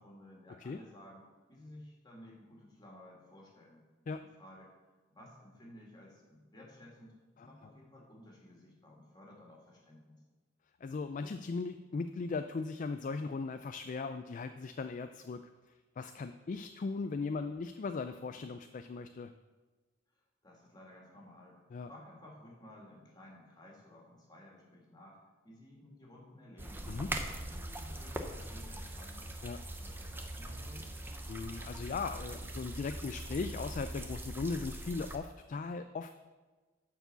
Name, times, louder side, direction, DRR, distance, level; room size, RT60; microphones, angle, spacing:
voice 1, 0.0-3.8 4.4-4.7 5.1-10.2 20.4-21.6 21.9-25.2 25.4-26.9 27.3-29.3 29.6-31.0, left 1 dB, 20° left, -3 dB, 2.3 m, -55 dB
voice 2, 10.8-15.4 16.0-19.3 21.7-21.9 26.9-27.1 29.4-29.6 31.3-36.1, left 4 dB, 40° left, 9 dB, 0.3 m, -38 dB
sound 1, 26.6-35.2, right 1 dB, 10° right, 0.7 m, -42 dB
10.0 x 4.7 x 6.9 m, 1.3 s
head